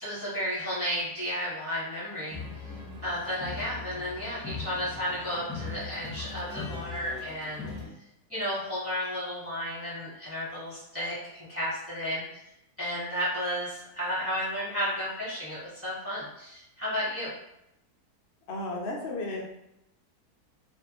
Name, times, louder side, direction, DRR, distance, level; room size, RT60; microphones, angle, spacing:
voice 1, 0.0-2.4 3.0-7.6 8.3-12.4 12.8-17.3, equal, 10° right, -9 dB, 0.9 m, -33 dB
sound 1, 2.3-7.9, left 4 dB, 10° left, 0.6 m, -40 dB
voice 2, 18.5-19.4, left 2 dB, 85° left, -2 dB, 0.5 m, -33 dB
2.5 x 2.4 x 2.8 m, 0.83 s
omnidirectional pair, 1.7 m